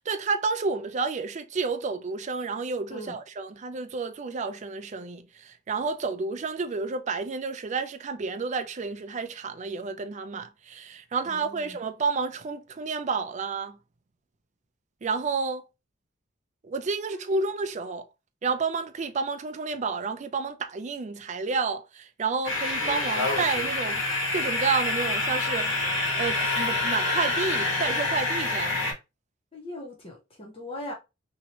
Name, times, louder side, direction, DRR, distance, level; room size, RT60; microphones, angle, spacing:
voice 1, 0.1-13.8 15.0-15.6 16.6-18.1 18.4-24.0 24.3-25.7 26.2-28.9, right 4 dB, 35° right, 0.4 m, -30 dB
voice 2, 11.2-11.8 17.1-17.4 29.5-30.9, left 1 dB, 30° left, 0.8 m, -40 dB
sound 1, 22.4-28.9, left 2 dB, 70° left, 1.5 m, -27 dB
2.9 x 2.8 x 2.8 m
head